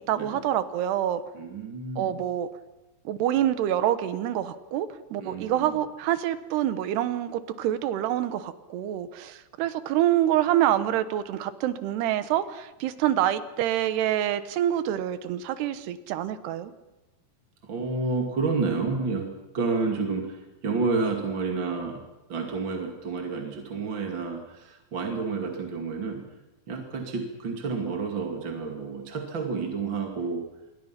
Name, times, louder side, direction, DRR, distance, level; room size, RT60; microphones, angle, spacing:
voice 1, 0.0-1.2 2.0-2.5 3.1-16.7, right 12 dB, 90° right, 12 dB, 3.2 m, -26 dB
voice 2, 1.3-2.2 5.2-5.8 17.6-22.0 22.3-26.2 26.7-30.4, right 4 dB, 35° right, 2 dB, 2.6 m, -30 dB
26.5 x 23.0 x 5.9 m, 1.0 s
omnidirectional pair, 4.6 m